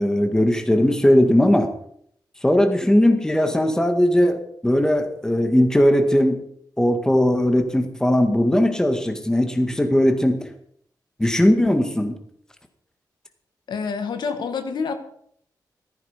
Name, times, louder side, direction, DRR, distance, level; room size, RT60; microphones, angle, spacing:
voice 1, 0.0-1.7 2.4-6.4 6.8-10.4 11.2-12.1, left 1 dB, 10° left, 6 dB, 2.0 m, -18 dB
voice 2, 13.7-14.9, left 5 dB, 90° left, 7 dB, 2.0 m, -27 dB
16.0 x 14.0 x 5.2 m, 0.66 s
wide cardioid pair, 135°, 7 cm